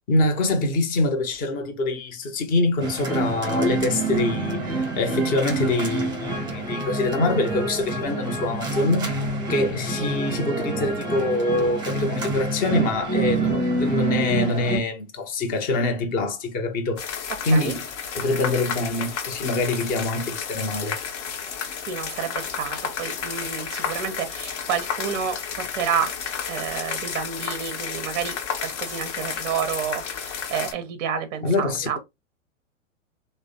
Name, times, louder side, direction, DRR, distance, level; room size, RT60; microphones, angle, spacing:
voice 1, 0.1-9.2 9.5-17.8 18.1-21.0 31.4-32.0, left 2 dB, 20° left, 0.7 m, -25 dB
sound 1, 2.8-14.8, right 2 dB, 10° right, 0.8 m, -27 dB
sound 2, 17.0-30.7, left 7 dB, 60° left, 1.0 m, -32 dB
voice 2, 21.9-25.4 25.7-26.1 26.5-28.3 28.6-32.0, right 7 dB, 35° right, 0.5 m, -29 dB
3.0 x 2.0 x 2.6 m
hypercardioid pair, 110°, 40 cm